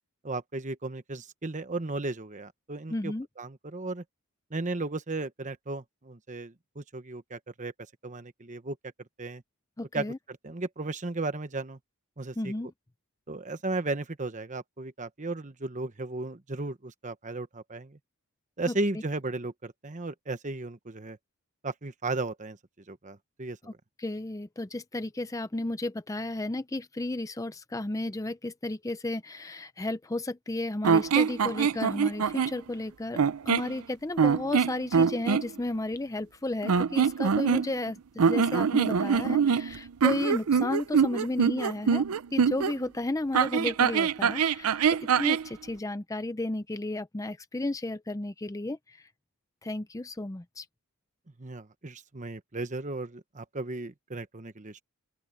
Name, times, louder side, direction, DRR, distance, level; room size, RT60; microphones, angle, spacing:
voice 1, 0.2-4.0 4.5-7.7 8.0-8.8 9.2-9.4 9.9-11.8 12.2-12.5 13.3-18.0 18.6-21.2 21.6-22.6 22.9-23.6 51.4-54.8, right 2 dB, 35° right, 1.1 m, -35 dB
voice 2, 2.9-3.3 9.8-10.2 12.4-12.7 18.7-18.8 23.6-23.7 24.0-33.2 33.5-42.0 42.3-49.1 49.6-50.7, left 2 dB, 15° left, 0.5 m, -33 dB
sound 1, 30.8-32.6 33.2-33.7 34.2-35.5 36.6-37.9 38.2-42.7 43.3-45.5, right 6 dB, 85° right, 0.5 m, -24 dB
open air
head